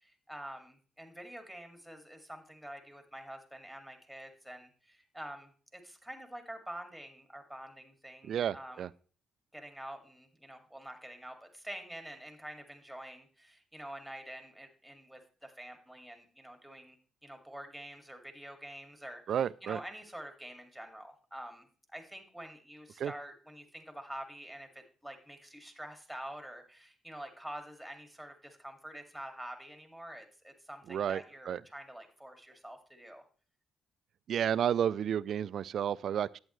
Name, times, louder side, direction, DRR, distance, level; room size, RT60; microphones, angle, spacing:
voice 1, 0.0-8.9 9.5-17.0 17.2-33.2, right 1 dB, ahead, 2.2 m, -47 dB
voice 2, 8.2-8.9 19.3-19.8 23.0-23.1 30.9-31.6 34.3-36.4, right 9 dB, 65° right, 0.3 m, -31 dB
11.0 x 8.7 x 3.1 m
cardioid pair, 90°, 0 cm